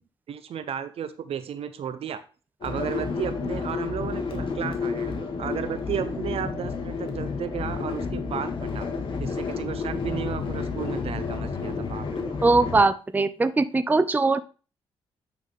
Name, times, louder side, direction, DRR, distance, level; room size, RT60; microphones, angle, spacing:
voice 1, 0.3-2.2 2.6-8.9 9.2-12.4, right 8 dB, 70° right, 11 dB, 0.8 m, -33 dB
sound 1, 2.6-12.8, left 5 dB, 55° left, 1.6 m, -30 dB
voice 2, 12.4-14.4, right 3 dB, 15° right, 12 dB, 0.5 m, -21 dB
9.1 x 4.2 x 3.5 m, 0.35 s
cardioid pair, 75°, 11 cm